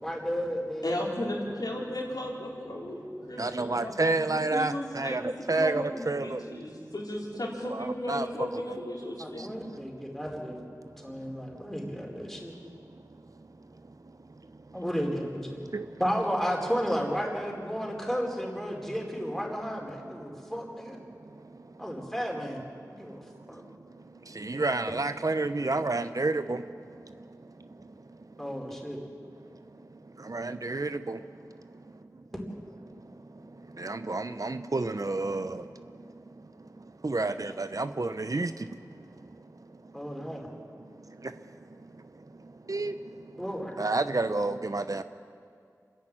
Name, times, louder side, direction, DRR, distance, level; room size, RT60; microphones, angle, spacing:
voice 1, 0.0-1.1 9.2-10.6 11.0-12.5 14.7-15.6 16.0-21.0 21.8-22.6 22.9-23.2 23.5-23.6 28.4-29.0 39.9-40.5 43.4-43.7, equal, 5° left, -1 dB, 4.4 m, -33 dB
voice 2, 0.8-9.5, left 1 dB, 80° left, -3 dB, 3.9 m, -35 dB
voice 3, 3.4-6.4 7.6-8.6 15.7-15.8 24.4-26.6 30.3-31.2 33.8-35.6 37.0-38.5 42.7-42.9 43.8-45.0, right 3 dB, 60° right, 10 dB, 0.7 m, -29 dB
28.0 x 11.0 x 8.8 m, 2.3 s
wide cardioid pair, 45°, 7 cm